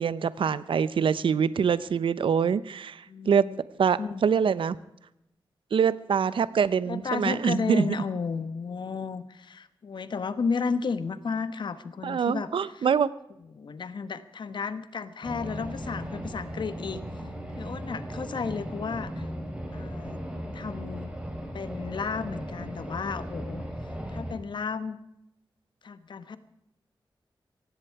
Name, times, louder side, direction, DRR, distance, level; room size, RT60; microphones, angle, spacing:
voice 1, 0.0-3.5 3.8-4.8 5.7-8.0 12.0-13.1, right 7 dB, 80° right, 17 dB, 0.7 m, -25 dB
voice 2, 3.1-3.6 4.0-4.2 6.9-12.9 13.5-17.0 17.6-19.3 19.7-20.2 20.5-21.1 21.5-23.6 24.1-25.0 25.8-26.4, left 5 dB, 65° left, 13 dB, 1.2 m, -33 dB
sound 1, 15.2-24.3, equal, 10° right, 3.9 m, -37 dB
18.0 x 15.5 x 4.7 m, 0.84 s
wide cardioid pair, 155°, 9 cm